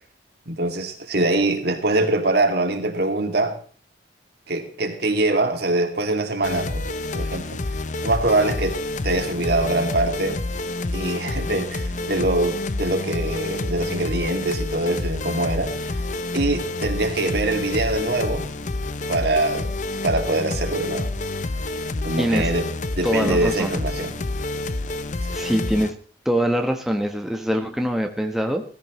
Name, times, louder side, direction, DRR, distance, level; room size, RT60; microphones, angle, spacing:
voice 1, 0.5-3.5 4.5-7.6 8.0-10.4 10.9-15.7 16.3-18.4 19.1-19.7 20.0-21.1 22.0-22.7 23.0-24.1, right 2 dB, 60° right, 5 dB, 2.5 m, -23 dB
sound 1, 6.4-25.9, left 2 dB, 45° left, 0.8 m, -28 dB
voice 2, 22.2-22.5 23.0-23.8 25.3-26.0 26.2-28.6, equal, ahead, 4 dB, 1.1 m, -23 dB
17.0 x 15.5 x 3.1 m, 0.41 s
head